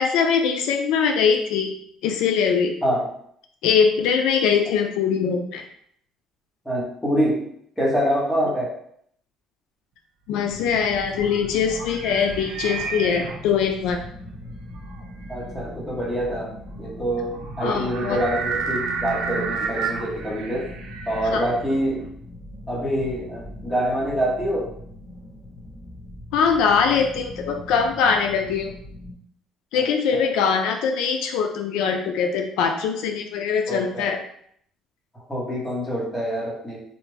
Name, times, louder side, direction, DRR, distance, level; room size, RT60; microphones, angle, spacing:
voice 1, 0.0-1.7 2.0-2.7 3.6-5.6 10.3-14.0 17.6-18.2 21.3-21.4 26.3-28.7 29.7-34.2, left 6 dB, 85° left, 4 dB, 0.4 m, -22 dB
voice 2, 6.6-7.4 7.8-8.7 15.3-16.5 16.8-20.7 21.1-22.1 22.7-24.7 29.7-30.3 33.7-34.1 35.1-36.8, equal, 10° left, -5 dB, 1.2 m, -25 dB
sound 1, 10.5-29.1, left 1 dB, 30° left, 1.3 m, -40 dB
sound 2, 10.6-22.1, right 5 dB, 65° right, 0.6 m, -32 dB
3.3 x 2.4 x 3.3 m, 0.66 s
cardioid pair, 140°, 0 cm